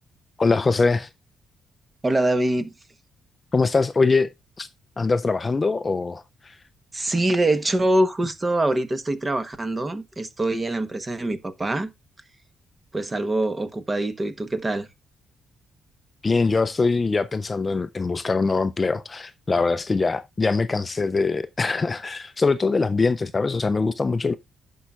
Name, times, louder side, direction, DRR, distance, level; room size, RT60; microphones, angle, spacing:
voice 1, 0.4-1.1 3.5-4.3 4.6-4.7 5.0-6.6 16.2-24.3, left 4 dB, 25° left, 0.4 m, -23 dB
voice 2, 2.0-2.7 6.9-11.9 12.9-14.9, right 1 dB, 20° right, 1.0 m, -24 dB
16.5 x 5.5 x 2.4 m
cardioid pair, 145°, 0 cm